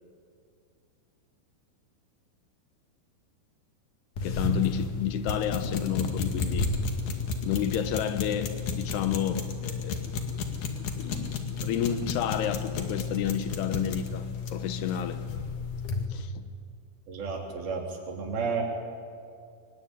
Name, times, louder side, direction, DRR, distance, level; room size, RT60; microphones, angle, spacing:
voice 1, 4.2-6.7 7.4-10.0 11.0-14.2 14.5-15.2 16.1-16.3, left 9 dB, 85° left, 3.3 m, -30 dB
sound 1, 4.2-16.1, left 4 dB, 55° left, 3.4 m, -32 dB
voice 2, 17.1-18.6, right 5 dB, 70° right, 5.3 m, -32 dB
25.0 x 21.0 x 9.8 m
omnidirectional pair, 4.5 m